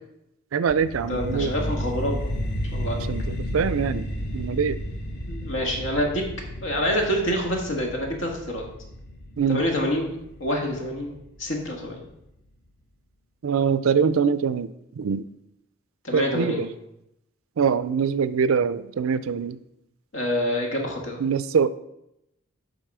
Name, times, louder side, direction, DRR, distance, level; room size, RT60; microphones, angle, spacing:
voice 1, 0.5-1.5 3.1-4.1 4.3-4.8 9.4-9.6 13.4-15.2 16.1-16.7 17.6-19.6 21.2-21.7, right 6 dB, 85° right, 15 dB, 0.4 m, -23 dB
sound 1, 0.7-11.7, equal, 55° left, 1.1 m, -32 dB
voice 2, 1.1-2.3 2.7-3.0 5.3-6.2 6.6-8.6 9.5-10.1 10.4-11.1 11.4-12.1 16.0-16.7 20.1-21.2, equal, 70° left, 1 dB, 1.7 m, -26 dB
10.5 x 4.0 x 4.8 m, 0.83 s
head